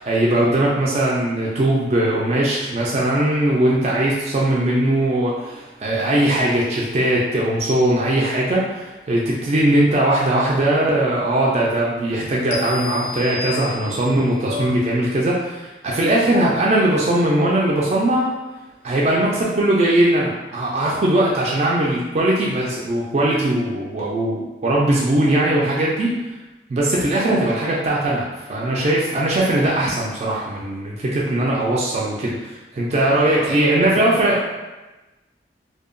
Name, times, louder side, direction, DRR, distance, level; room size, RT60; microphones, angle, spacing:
voice 1, 0.0-18.3 18.8-26.2 26.7-34.4, right 1 dB, 35° right, -4 dB, 0.3 m, -20 dB
sound 1, 12.5-14.2, left 4 dB, 65° left, 0.3 m, -32 dB
voice 2, 33.1-34.5, right 1 dB, 80° right, -3 dB, 0.6 m, -29 dB
2.7 x 2.2 x 2.5 m, 1.1 s
head